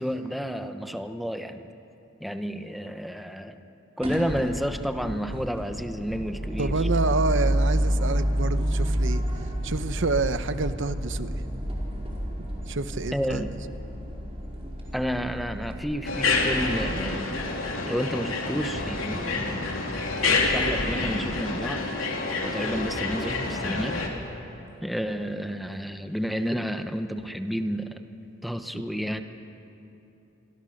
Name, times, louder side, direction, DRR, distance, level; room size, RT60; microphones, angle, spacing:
voice 1, 0.0-1.7 2.2-3.6 4.0-6.9 13.1-13.6 14.9-17.4 17.8-19.8 20.2-21.9 22.4-24.0 24.8-28.0 28.4-29.2, equal, ahead, 7 dB, 0.9 m, -31 dB
sound 1, 4.0-15.8, equal, 30° right, 4.9 m, -29 dB
voice 2, 6.6-9.2 9.6-11.4 12.7-13.4, right 3 dB, 65° right, 11 dB, 0.9 m, -28 dB
sound 2, 16.0-24.1, left 3 dB, 85° left, 3.3 m, -28 dB
27.5 x 24.0 x 6.6 m, 2.9 s
head